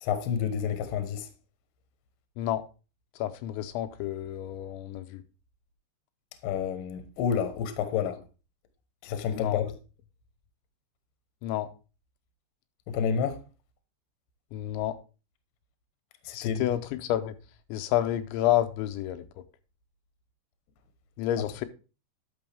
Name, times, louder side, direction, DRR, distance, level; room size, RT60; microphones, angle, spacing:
voice 1, 0.0-1.3 6.4-8.2 9.0-9.7 12.9-13.4 16.2-16.6, left 8 dB, 70° left, 2.2 m, -29 dB
voice 2, 3.2-5.2 9.3-9.6 11.4-11.7 14.5-15.0 16.3-17.3 17.7-19.4 21.2-21.7, left 12 dB, 85° left, 3.0 m, -29 dB
11.0 x 6.2 x 3.4 m
omnidirectional pair, 5.3 m